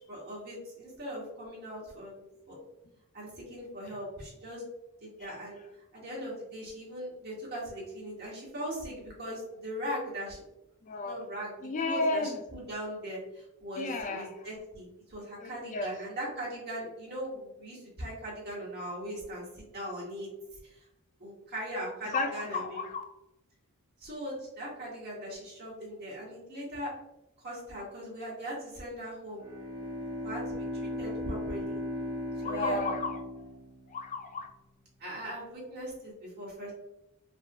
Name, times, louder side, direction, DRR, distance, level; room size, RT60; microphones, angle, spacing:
voice 1, 0.1-2.1 2.5-2.6 3.1-4.7 5.0-5.6 5.9-10.4 11.0-11.5 11.8-20.3 20.6-20.8 21.2-22.8 24.0-26.9 27.4-29.4 30.2-31.8 32.4-32.8 35.0-36.7, equal, 50° right, -5 dB, 1.4 m, -39 dB
voice 2, 10.8-11.2 11.6-12.4 13.8-14.3 15.4-15.9 22.0-23.0 32.4-33.2 33.9-34.5, left 2 dB, 35° left, 4 dB, 0.3 m, -32 dB
Bowed string instrument, 29.4-34.6, left 1 dB, 15° right, 0.8 m, -37 dB
3.5 x 2.4 x 2.6 m, 0.86 s
head